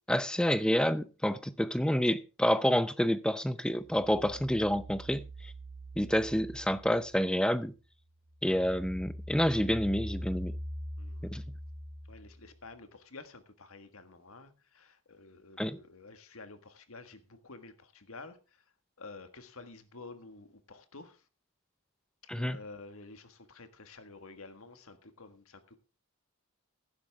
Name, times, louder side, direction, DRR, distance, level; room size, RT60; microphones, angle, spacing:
voice 1, 0.1-5.5 6.0-7.7 8.4-10.5 11.2-11.4 15.6-15.8 22.3-22.6, equal, 5° left, 0.6 m, -28 dB
sound 1, 3.7-7.6 8.0-12.6, equal, 35° right, 3.3 m, -43 dB
voice 2, 11.0-11.3 12.1-18.6 19.0-21.2 22.3-25.8, left 3 dB, 70° left, 1.6 m, -50 dB
15.5 x 11.5 x 3.5 m
head